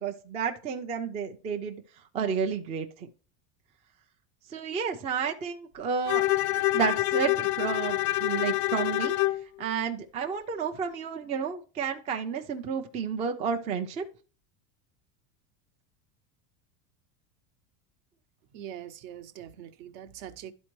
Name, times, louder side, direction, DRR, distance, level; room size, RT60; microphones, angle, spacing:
voice 1, 0.0-1.8 2.1-3.1 4.5-6.3 6.7-9.2 9.6-14.0, right 6 dB, 15° right, 0.3 m, -31 dB
Bowed string instrument, 6.1-9.5, left 18 dB, 80° left, 0.5 m, -26 dB
voice 2, 18.5-20.5, right 10 dB, 55° right, 0.8 m, -43 dB
12.0 x 4.3 x 3.0 m
supercardioid pair, 150°, 43 cm